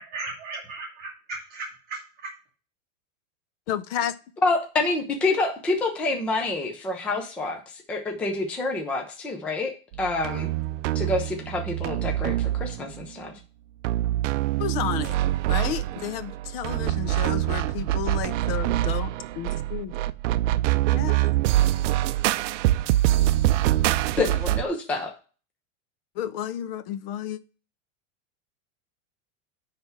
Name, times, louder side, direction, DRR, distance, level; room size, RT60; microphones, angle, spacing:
voice 1, 0.0-2.0, right 3 dB, 25° right, 1.6 m, -36 dB
voice 2, 3.7-4.1 14.6-15.2 15.5-20.0 20.9-21.3 26.1-27.4, left 10 dB, 50° left, 0.7 m, -32 dB
voice 3, 4.4-7.6 7.9-9.7 10.0-10.5 10.9-13.3 24.2-25.1, left 2 dB, 5° left, 0.4 m, -27 dB
sound 1, 9.9-13.0 13.8-24.6, right 15 dB, 65° right, 0.5 m, -25 dB
9.9 x 3.4 x 5.7 m
supercardioid pair, 165°, 39 cm